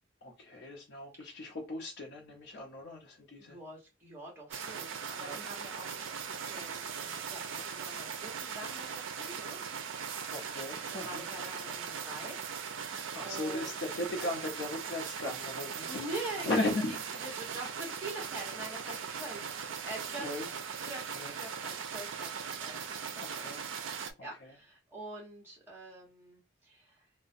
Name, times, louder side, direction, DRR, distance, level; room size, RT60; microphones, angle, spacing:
voice 1, 0.2-3.6 5.2-5.4 10.3-11.3 13.1-17.0 17.6-17.7 20.1-20.5 21.1-21.3 23.3-23.6 24.4-24.5, left 2 dB, 65° left, 0.7 m, -37 dB
voice 2, 3.4-9.8 10.8-12.4 13.2-13.8 15.8-16.7 17.2-19.4 19.8-20.3 20.8-23.5 23.9-27.1, right 2 dB, 10° right, 1.1 m, -45 dB
sound 1, 4.5-24.1, right 6 dB, 75° right, 0.4 m, -39 dB
2.4 x 2.1 x 2.6 m
head